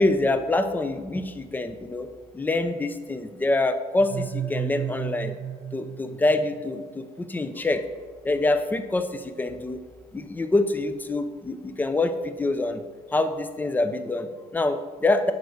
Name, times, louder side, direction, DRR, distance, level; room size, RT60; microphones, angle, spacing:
voice 1, 0.0-2.1 2.3-5.4 5.7-7.9 8.2-9.8 10.1-12.8 13.1-15.3, left 2 dB, 10° left, 9 dB, 0.4 m, -25 dB
sound 1, 4.0-6.8, right 10 dB, 75° right, 0.4 m, -33 dB
9.4 x 4.5 x 6.3 m, 1.5 s
cardioid pair, 175°, 16 cm